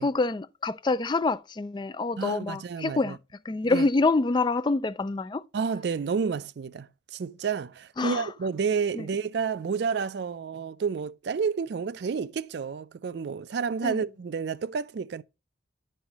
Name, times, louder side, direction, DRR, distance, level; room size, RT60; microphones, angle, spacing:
voice 1, 0.0-3.2 3.4-5.4 8.0-8.3 8.9-9.1 13.8-14.0, left 3 dB, 25° left, 0.3 m, -26 dB
voice 2, 2.2-3.2 3.7-3.9 5.5-15.2, right 5 dB, 60° right, 0.4 m, -30 dB
9.7 x 5.5 x 2.9 m
head